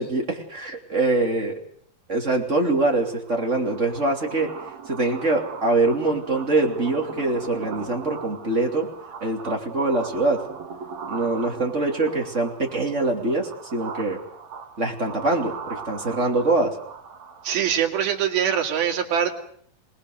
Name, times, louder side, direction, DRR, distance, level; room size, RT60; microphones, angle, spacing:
voice 1, 0.0-1.6 2.1-4.5 4.9-8.9 9.2-10.4 11.1-14.2 14.8-16.7, right 2 dB, 20° right, 2 dB, 2.8 m, -24 dB
sound 1, 2.5-17.8, right 5 dB, 50° right, 3.6 m, -39 dB
voice 2, 17.4-19.4, right 8 dB, 90° right, 2 dB, 4.2 m, -23 dB
26.5 x 19.5 x 6.6 m, 0.62 s
omnidirectional pair, 4.2 m